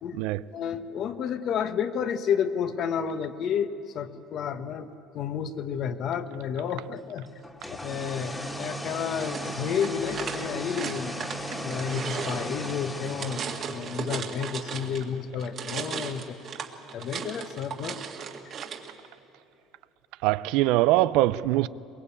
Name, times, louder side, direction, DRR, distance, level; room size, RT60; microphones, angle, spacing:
voice 1, 0.5-4.9 5.1-7.3 7.7-11.1 11.6-16.4 16.9-18.0, left 7 dB, 50° left, 1.2 m, -31 dB
sound 1, 7.4-14.2, equal, 10° left, 1.9 m, -36 dB
sound 2, 9.1-15.1 15.4-18.9, right 6 dB, 45° right, 1.9 m, -36 dB
voice 2, 20.2-21.7, right 16 dB, 80° right, 0.5 m, -22 dB
23.0 x 21.5 x 8.5 m
cardioid pair, 130°, 0 cm